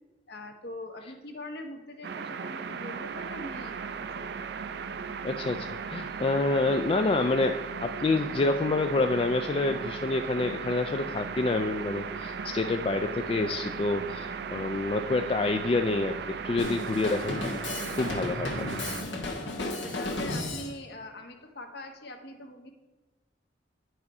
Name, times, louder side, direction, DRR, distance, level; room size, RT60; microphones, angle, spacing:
voice 1, 0.3-4.8 19.6-22.7, left 1 dB, 65° left, 4 dB, 1.1 m, -43 dB
sound 1, 2.0-19.0, right 6 dB, 65° right, 0.5 m, -37 dB
voice 2, 5.2-16.2 16.4-17.4 17.9-18.7, left 3 dB, 30° left, 7 dB, 0.3 m, -27 dB
Drum kit, 16.6-20.7, left 2 dB, 80° left, 1.4 m, -34 dB
9.2 x 4.9 x 5.4 m, 1.2 s
head